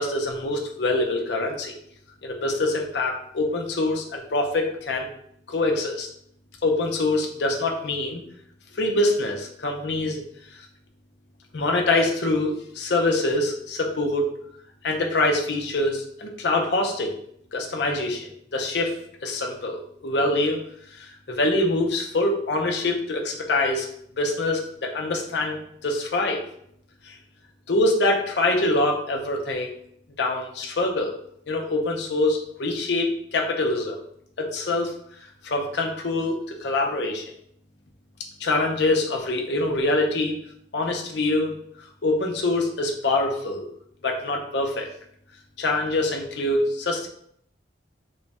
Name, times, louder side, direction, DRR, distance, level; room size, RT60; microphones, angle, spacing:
voice 1, 0.0-1.7 2.2-5.1 5.5-6.1 6.6-8.2 8.7-10.2 11.5-14.3 14.8-17.2 17.5-19.0 19.2-20.6 20.9-23.9 24.2-26.4 27.0-27.2 27.7-29.7 30.2-31.1 31.5-34.0 34.4-34.9 35.4-37.2 38.4-40.4 40.7-41.5 42.0-43.7 44.0-44.9 45.6-47.1, left 2 dB, 65° left, 1 dB, 0.6 m, -24 dB
3.1 x 2.2 x 4.1 m, 0.68 s
head